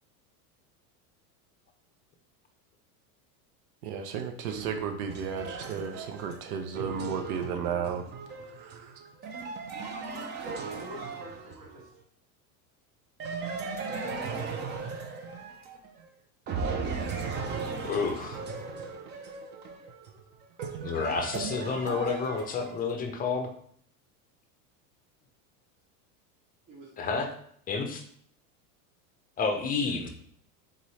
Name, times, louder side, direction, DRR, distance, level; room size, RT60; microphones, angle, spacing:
voice 1, 3.8-8.1 8.6-9.0, right 6 dB, 85° right, 6 dB, 0.7 m, -34 dB
sound 1, 4.5-11.9 13.2-16.0 16.5-22.9, right 5 dB, 25° right, 0.4 m, -37 dB
voice 2, 10.4-11.9 13.8-15.0 26.7-27.2 29.8-30.0, right 1 dB, 45° right, -4 dB, 1.7 m, -46 dB
voice 3, 17.8-18.4 20.8-23.5 27.0-27.3 27.7-28.0 29.4-30.1, left 4 dB, 20° left, 4 dB, 0.6 m, -30 dB
3.8 x 3.1 x 4.1 m, 0.62 s
supercardioid pair, 125°, 45 cm